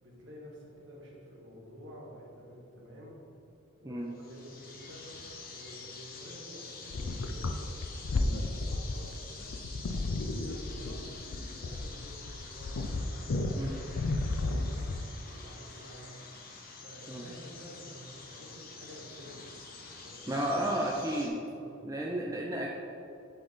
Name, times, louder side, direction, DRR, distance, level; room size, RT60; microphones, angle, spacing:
voice 1, 0.0-3.1 3.8-5.1 5.4-9.5 10.3-11.0 11.5-12.9 13.3-14.8 15.2-16.2 16.8-19.4 20.0-20.8 21.4-21.7 22.0-22.3, equal, 65° right, -4 dB, 1.6 m, -50 dB
sound 1, 4.1-21.3, left 4 dB, 45° left, 0.8 m, -47 dB
sound 2, 6.9-15.2, left 2 dB, 80° left, 0.5 m, -33 dB
voice 2, 20.3-21.3 21.8-22.7, right 1 dB, 15° right, -2 dB, 0.4 m, -32 dB
7.9 x 4.0 x 4.0 m, 2.6 s
head